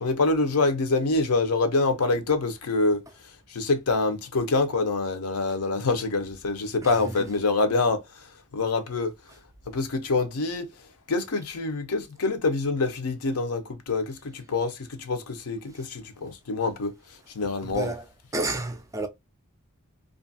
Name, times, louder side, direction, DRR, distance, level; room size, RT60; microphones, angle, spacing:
voice 1, 0.0-3.0 3.5-8.0 8.5-9.1 9.7-10.7 11.1-16.9 17.3-17.9, left 3 dB, 75° left, 0.6 m, -26 dB
voice 2, 17.6-18.0 18.3-19.1, right 2 dB, 15° right, 0.4 m, -30 dB
2.7 x 2.4 x 2.5 m
head